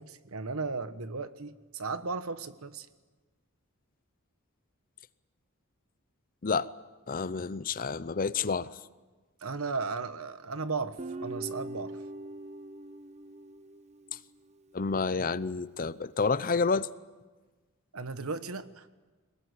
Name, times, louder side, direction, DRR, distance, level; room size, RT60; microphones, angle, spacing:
voice 1, 0.0-2.9 9.4-12.0 17.9-18.9, right 4 dB, 75° right, 12 dB, 1.3 m, -35 dB
voice 2, 7.1-8.7 14.7-16.9, left 4 dB, 40° left, 16 dB, 0.7 m, -29 dB
Guitar, 11.0-14.3, right 2 dB, 30° right, 0.9 m, -42 dB
22.5 x 20.5 x 9.7 m, 1.3 s
head